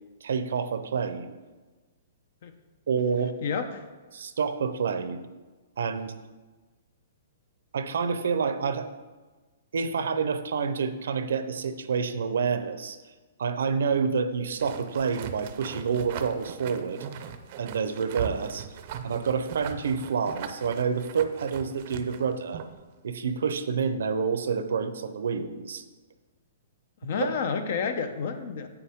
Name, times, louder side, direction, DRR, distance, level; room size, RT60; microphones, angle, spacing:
voice 1, 0.2-1.3 2.9-3.4 4.1-5.3 5.8-6.1 7.7-8.9 9.7-13.0 13.4-17.1 17.6-18.7 19.0-22.6 23.0-25.8, right 6 dB, 80° right, 10 dB, 0.7 m, -28 dB
voice 2, 3.4-3.9 27.0-28.7, left 6 dB, 55° left, 8 dB, 0.8 m, -30 dB
sound 1, 14.6-22.8, right 8 dB, 40° right, 0.6 m, -40 dB
8.5 x 7.0 x 3.6 m, 1.3 s
hypercardioid pair, 160°, 0 cm